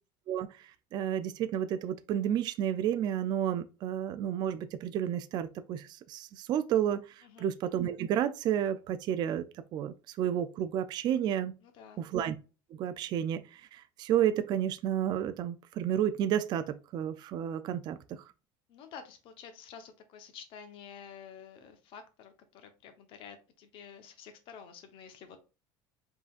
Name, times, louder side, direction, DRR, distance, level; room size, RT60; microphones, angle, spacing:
voice 1, 0.9-7.0 7.4-9.5 9.7-11.5 12.0-12.4 12.8-18.2, right 10 dB, 40° right, 0.4 m, -31 dB
voice 2, 11.6-12.1 18.7-25.4, left 7 dB, 50° left, 1.0 m, -50 dB
4.9 x 3.8 x 2.4 m
cardioid pair, 145°, 11 cm